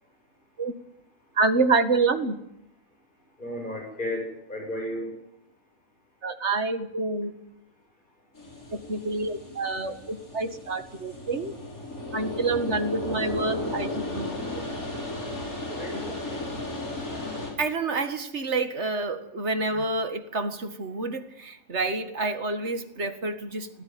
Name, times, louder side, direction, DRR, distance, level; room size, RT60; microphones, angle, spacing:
voice 1, 1.4-2.4 6.2-7.3 8.9-11.5 12.1-14.6 15.9-16.0 16.3-16.5 17.6-23.8, right 3 dB, 50° right, 2.1 m, -28 dB
voice 2, 3.4-5.1 15.7-16.2 19.7-19.8, left 1 dB, 35° left, 8.2 m, -34 dB
sound 1, 8.3-17.5, left 1 dB, 80° left, 6.1 m, -35 dB
20.0 x 18.5 x 9.5 m
omnidirectional pair, 1.5 m